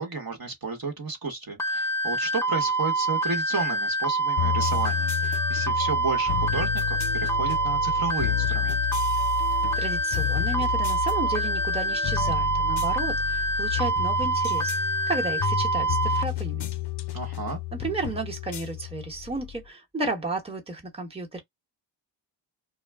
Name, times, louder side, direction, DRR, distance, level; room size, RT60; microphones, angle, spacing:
voice 1, 0.0-8.8 17.1-17.6, right 4 dB, 45° right, 1.1 m, -32 dB
sound 1, 1.6-16.2, right 2 dB, 5° left, 0.6 m, -26 dB
sound 2, 4.4-19.6, left 12 dB, 55° left, 0.6 m, -31 dB
voice 2, 9.5-14.7 15.1-16.7 17.7-21.4, right 3 dB, 10° right, 1.1 m, -33 dB
2.2 x 2.2 x 3.4 m
wide cardioid pair, 65°, 48 cm